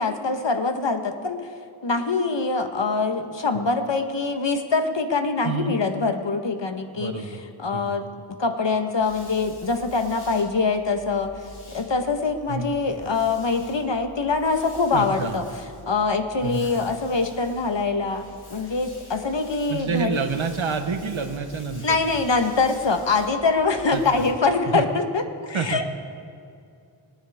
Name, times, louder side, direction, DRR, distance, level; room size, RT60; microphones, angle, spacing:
voice 1, 0.0-1.4 1.8-8.1 8.4-11.4 11.7-15.5 15.9-20.2 21.8-25.9, left 4 dB, 60° left, 6 dB, 1.4 m, -24 dB
voice 2, 5.4-5.7 7.0-7.4 7.7-7.9 12.5-12.7 14.9-15.3 16.4-16.6 19.7-22.0 23.9-24.3 24.7-24.8 25.5-25.8, right 5 dB, 70° right, 6 dB, 1.2 m, -28 dB
sound 1, 9.0-24.3, left 1 dB, 75° left, 3.4 m, -46 dB
26.5 x 9.7 x 3.6 m, 2.4 s
cardioid pair, 40°, 49 cm